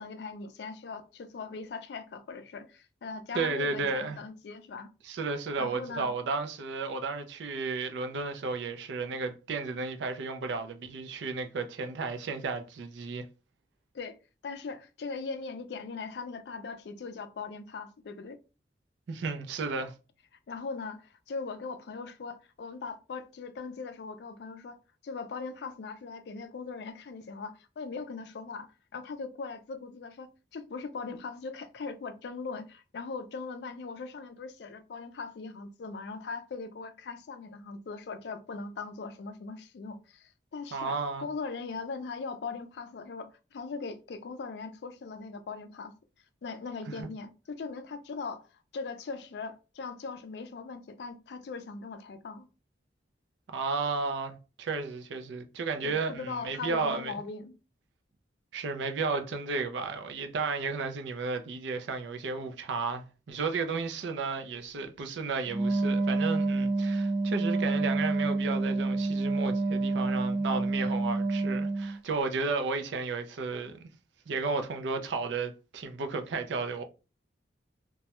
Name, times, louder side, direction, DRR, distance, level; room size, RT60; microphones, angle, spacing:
voice 1, 0.0-4.9 5.6-6.1 13.9-14.2 14.4-18.4 20.5-24.8 25.0-28.7 28.9-45.9 46.4-48.5 48.7-52.5 55.8-57.5, left 4 dB, 70° left, 0.4 m, -40 dB
voice 2, 3.3-4.2 5.0-13.2 19.1-19.9 40.7-41.3 47.0-47.1 53.5-57.1 58.5-73.9 74.3-76.8, right 4 dB, 80° right, 0.4 m, -33 dB
Wind instrument woodwind instrument, 65.5-72.0, right 2 dB, 25° right, 0.7 m, -28 dB
2.2 x 2.0 x 2.8 m
head